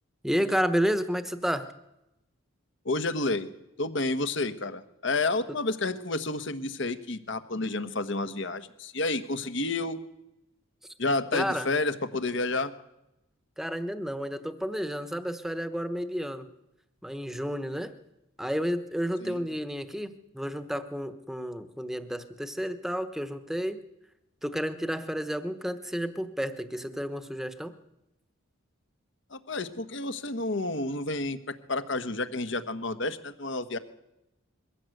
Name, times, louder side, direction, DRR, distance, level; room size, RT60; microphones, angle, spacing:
voice 1, 0.2-1.7 11.3-11.7 13.6-16.5 17.0-17.9 18.4-23.8 24.4-27.7, equal, ahead, 10 dB, 1.1 m, -31 dB
voice 2, 2.8-3.5 3.8-10.0 11.0-12.7 19.2-19.4 29.3-31.4 31.7-33.8, left 2 dB, 60° left, 10 dB, 1.3 m, -30 dB
22.5 x 16.0 x 7.9 m, 0.90 s
head